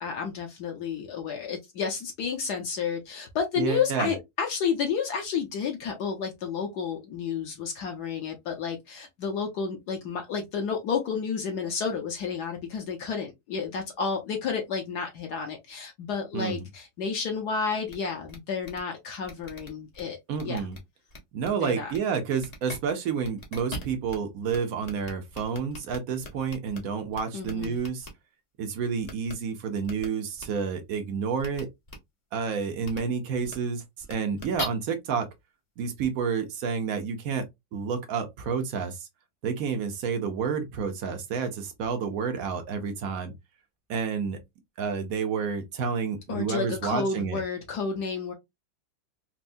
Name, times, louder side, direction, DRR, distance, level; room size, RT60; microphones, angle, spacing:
voice 1, 0.0-20.2 20.4-20.6 21.6-21.9 27.3-27.8 46.3-48.3, left 6 dB, 65° left, 1.1 m, -31 dB
voice 2, 3.6-4.2 16.3-16.6 20.3-20.8 21.3-28.1 28.6-31.7 32.3-35.3 35.8-37.4 37.7-39.1 39.4-43.3 43.9-44.4 44.8-47.4, right 6 dB, 70° right, 0.8 m, -30 dB
sound 1, 17.9-18.0 18.3-18.4 18.6-18.8 19.2-20.0 20.3-20.8 21.1-21.5 21.9-22.0 22.4-22.8 23.2-24.2 24.5-24.6 24.8-26.8 27.1-28.1 29.0-29.3 29.8-30.1 30.4-30.5 31.4-31.6 31.9-32.0 32.8-33.0 33.4-33.5 34.0-34.6, left 2 dB, 45° left, 0.5 m, -40 dB
4.4 x 2.0 x 2.5 m
omnidirectional pair, 2.2 m